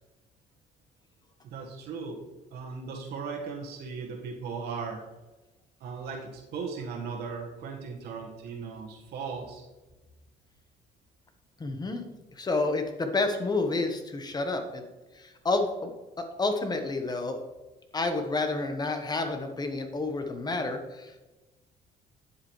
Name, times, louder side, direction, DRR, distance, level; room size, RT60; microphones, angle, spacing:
voice 1, 1.4-2.2 2.5-5.0 5.8-9.6, right 5 dB, 75° right, -1 dB, 1.4 m, -37 dB
voice 2, 11.6-12.1 12.4-14.8 15.2-15.9 16.2-17.4 17.9-21.2, left 3 dB, 25° left, 6 dB, 1.1 m, -29 dB
9.6 x 7.5 x 3.2 m, 1.1 s
cardioid pair, 110°, 17 cm